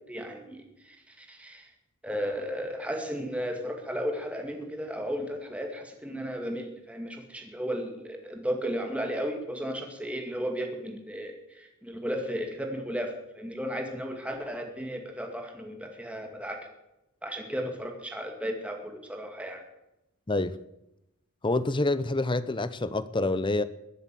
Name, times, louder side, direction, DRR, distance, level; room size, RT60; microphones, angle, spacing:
voice 1, 0.1-1.7 2.0-16.7 17.2-19.6, equal, 5° right, 2.2 m, -34 dB
voice 2, 21.4-23.6, left 2 dB, 20° left, 0.7 m, -27 dB
21.5 x 8.0 x 7.6 m
head